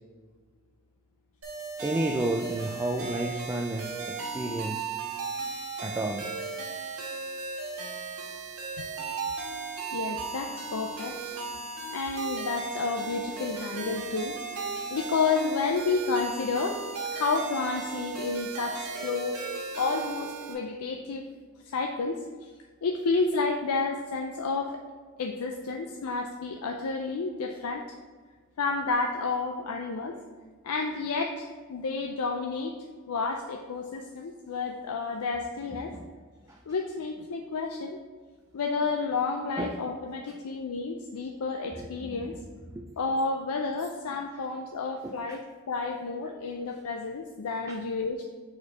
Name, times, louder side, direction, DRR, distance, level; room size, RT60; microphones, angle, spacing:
sound 1, 1.4-20.5, right 5 dB, 90° right, 1.4 m, -36 dB
voice 1, 1.8-4.9 5.8-6.3 25.4-25.6 35.9-36.1 36.5-36.6 39.6-39.8 41.7-42.5 42.7-42.8 44.0-44.1 45.0-45.4 47.7-47.8, right 1 dB, 15° right, 1 dB, 0.3 m, -32 dB
voice 2, 9.9-11.4 11.9-14.3 14.9-16.8 17.1-19.4 19.8-21.3 21.7-22.5 22.8-24.8 25.2-27.8 28.6-30.2 30.6-32.7 33.1-35.9 36.7-38.0 38.5-42.4 43.0-48.2, left 4 dB, 90° left, 3 dB, 0.5 m, -30 dB
4.8 x 4.5 x 4.7 m, 1.5 s
head